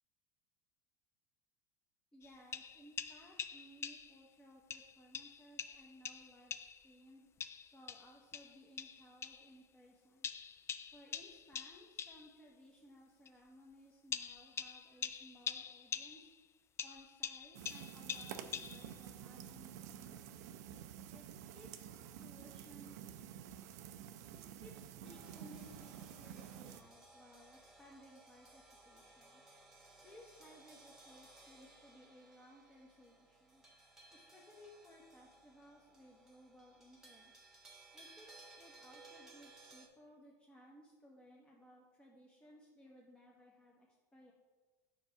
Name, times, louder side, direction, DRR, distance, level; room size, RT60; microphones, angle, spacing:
voice 1, 2.1-7.3 7.7-10.3 10.9-16.3 16.8-20.5 21.1-21.2 21.5-22.9 24.3-29.4 30.0-33.6 34.1-37.4 37.9-44.3, equal, 10° left, -3 dB, 1.0 m, -61 dB
sound 1, 2.2-4.3 4.7-6.9 7.4-9.5 10.2-12.3 13.3-13.4 14.1-16.4 16.8-19.0, left 8 dB, 30° left, 0.4 m, -45 dB
sound 2, 17.5-26.8, right 9 dB, 70° right, 0.5 m, -50 dB
sound 3, 25.0-39.9, right 2 dB, 5° right, 1.3 m, -61 dB
4.8 x 4.6 x 5.8 m, 1.3 s
hypercardioid pair, 90°, 9 cm